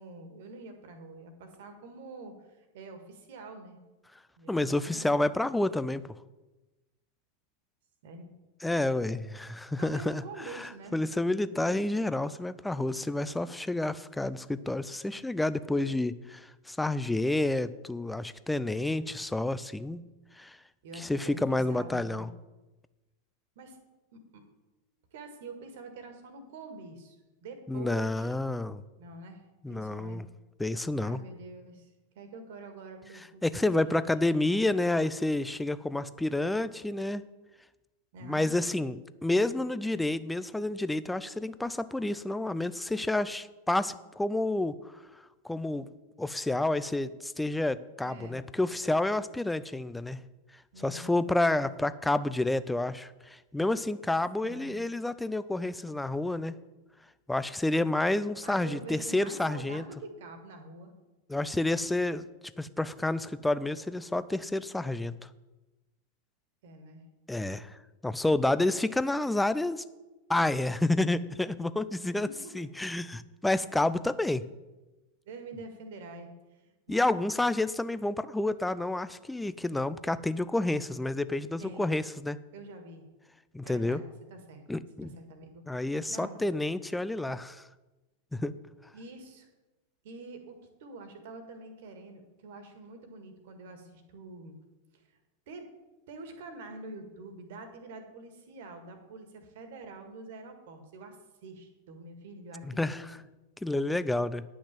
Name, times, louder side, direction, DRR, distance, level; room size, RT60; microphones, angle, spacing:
voice 1, 0.0-3.8 4.4-5.2 8.0-8.3 9.8-11.0 18.8-19.1 20.8-22.3 23.6-23.8 24.1-24.4 25.1-27.2 27.4-28.4 29.0-30.2 31.0-31.9 32.2-34.1 38.1-38.5 48.0-48.4 50.7-51.1 54.4-54.8 58.4-60.9 66.6-67.0 72.1-72.6 73.6-73.9 75.3-77.3 81.6-82.0 82.5-83.1 83.6-84.6 85.0-85.7 86.1-86.4 88.9-89.5 90.0-94.6 94.9-95.0 95.5-95.7 96.1-101.2 101.4-103.2 103.7-103.8, right 2 dB, 55° right, 7 dB, 1.8 m, -46 dB
voice 2, 4.5-6.0 8.6-20.0 20.4-20.6 21.0-22.3 27.7-28.8 29.6-30.3 30.6-31.2 33.4-37.2 38.2-44.8 45.4-45.9 46.2-50.2 50.8-56.6 57.3-59.8 61.3-62.2 62.6-65.1 67.3-69.8 70.3-72.3 72.5-74.4 76.9-82.4 83.5-84.0 84.7-85.1 85.7-87.6 88.3-88.5 102.6-103.2 103.6-104.4, left 2 dB, 5° left, 15 dB, 0.4 m, -29 dB
10.0 x 6.2 x 7.6 m, 1.1 s
figure-of-eight pair, 90°, 0 cm